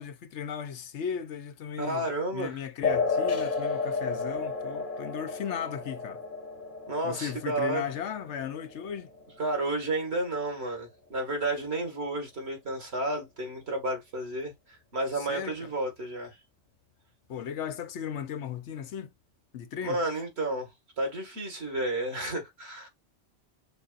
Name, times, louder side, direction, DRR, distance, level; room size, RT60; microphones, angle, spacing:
voice 1, 0.0-2.1 2.3-6.2 7.0-9.1 15.1-15.7 17.3-19.1 19.5-20.0, left 8 dB, 80° left, 1.0 m, -36 dB
voice 2, 1.8-2.6 6.9-7.9 9.4-16.4 19.8-20.7 21.0-22.9, right 2 dB, 65° right, 2.2 m, -31 dB
sound 1, 2.8-9.9, left 4 dB, 50° left, 1.2 m, -32 dB
6.6 x 2.5 x 2.4 m
omnidirectional pair, 1.2 m